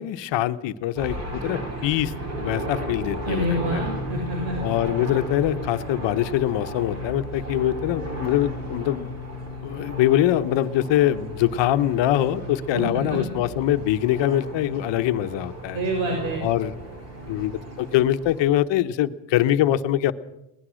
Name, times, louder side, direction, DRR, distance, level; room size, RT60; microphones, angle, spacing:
voice 1, 0.0-2.1 2.4-3.9 4.6-9.1 9.6-15.8 16.4-16.7 17.3-20.1, left 12 dB, 75° left, 10 dB, 1.0 m, -23 dB
sound 1, 1.0-18.5, equal, 35° right, 5.0 m, -34 dB
voice 2, 3.2-4.6 12.7-13.2 15.7-16.4, equal, 90° right, 1 dB, 6.4 m, -27 dB
21.5 x 19.0 x 6.3 m, 0.88 s
cardioid pair, 175°, 45 cm